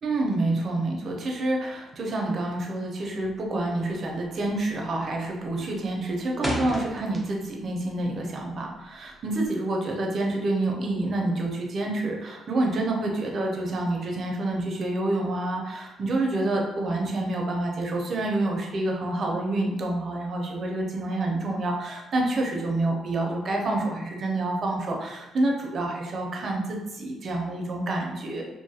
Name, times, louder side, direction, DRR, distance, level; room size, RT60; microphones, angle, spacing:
voice 1, 0.0-28.5, right 2 dB, 50° right, 0 dB, 0.6 m, -28 dB
sound 1, 3.2-3.6 3.9-4.2 4.6-5.0 5.3-7.7 8.0-9.5, equal, 5° left, 0.6 m, -34 dB
2.5 x 2.3 x 2.8 m, 1.0 s
cardioid pair, 90°, 0 cm